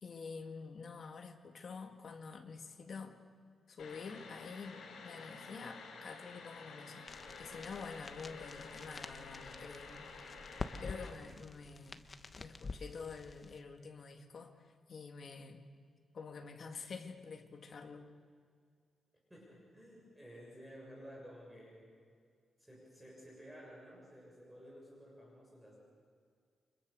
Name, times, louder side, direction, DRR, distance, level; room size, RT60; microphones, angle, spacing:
voice 1, 0.0-3.2 3.7-7.1 7.4-10.2 10.8-12.1 12.4-15.7 16.1-18.1, left 5 dB, 45° left, 4 dB, 2.1 m, -48 dB
sound 1, 3.8-11.1, left 4 dB, 85° left, 5.7 m, -51 dB
sound 2, 7.1-13.6, left 3 dB, 25° left, 1.1 m, -48 dB
voice 2, 19.3-21.9 22.6-25.8, equal, 5° right, -3 dB, 6.8 m, -54 dB
29.5 x 25.5 x 6.7 m, 2.1 s
wide cardioid pair, 165°, 0 cm